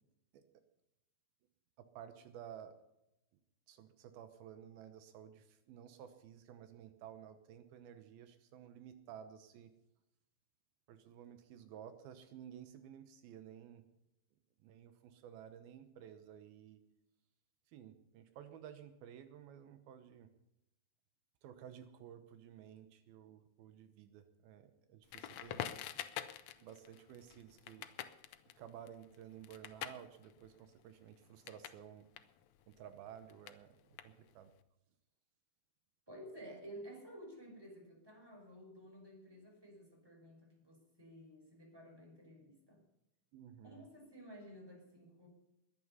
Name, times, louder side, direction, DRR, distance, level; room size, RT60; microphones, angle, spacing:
voice 1, 1.8-2.8 3.7-9.7 10.9-13.8 14.6-16.8 17.7-20.3 21.4-25.7 26.6-27.9 28.6-32.1 32.7-34.5 43.3-43.9, right 9 dB, 80° right, 10 dB, 2.9 m, -54 dB
Crackle, 25.1-31.8 32.1-34.5, left 10 dB, 75° left, 1.6 m, -47 dB
voice 2, 36.1-42.8 43.6-45.3, equal, 5° right, 1 dB, 5.0 m, -53 dB
22.0 x 10.0 x 5.6 m, 0.88 s
omnidirectional pair, 4.3 m